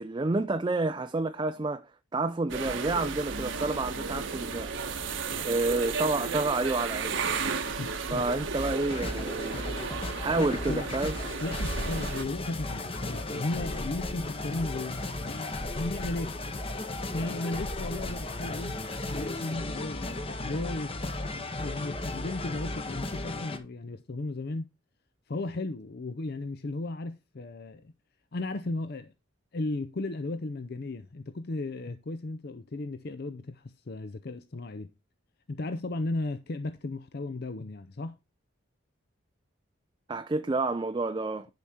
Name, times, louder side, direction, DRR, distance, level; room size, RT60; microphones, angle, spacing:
voice 1, 0.0-4.7 5.4-7.2 8.1-9.6 10.2-11.1 40.1-41.5, right 3 dB, 20° right, 0.4 m, -29 dB
sound 1, 2.5-12.2, right 4 dB, 65° right, 1.1 m, -34 dB
voice 2, 7.8-8.5 10.2-10.9 11.4-16.3 17.1-18.8 19.0-24.7 25.3-27.9 28.3-29.1 29.5-34.9 35.5-38.2, left 2 dB, 50° left, 0.5 m, -35 dB
sound 2, 8.5-23.6, left 2 dB, 25° left, 0.8 m, -35 dB
10.5 x 5.0 x 4.2 m
head